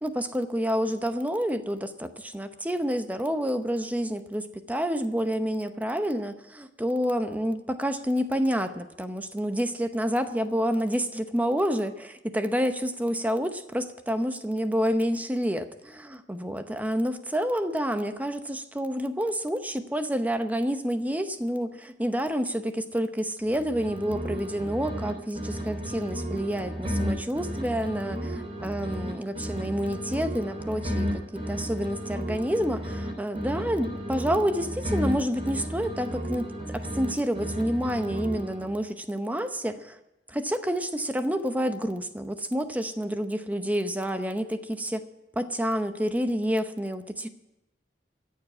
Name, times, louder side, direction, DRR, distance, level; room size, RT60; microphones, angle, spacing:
voice 1, 0.0-31.2 31.5-40.0 40.3-45.0 45.4-47.3, equal, 10° right, 9 dB, 0.8 m, -28 dB
sound 1, 23.4-25.1 25.4-29.1 29.4-33.1 33.4-37.1 37.4-38.8, equal, 35° right, 3.3 m, -33 dB
14.0 x 7.4 x 9.6 m, 0.94 s
head